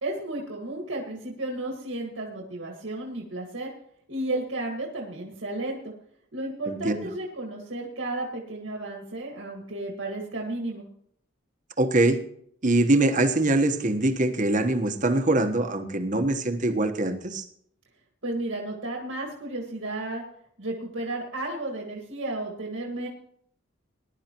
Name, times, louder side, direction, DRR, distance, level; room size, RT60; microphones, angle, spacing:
voice 1, 0.0-3.7 4.1-5.9 6.3-10.9 18.2-20.2 20.6-23.1, right 2 dB, 80° right, 0 dB, 1.9 m, -33 dB
voice 2, 6.7-7.1 11.8-12.2 12.6-17.4, right 2 dB, 40° right, 7 dB, 1.2 m, -23 dB
20.0 x 11.5 x 3.0 m, 0.68 s
head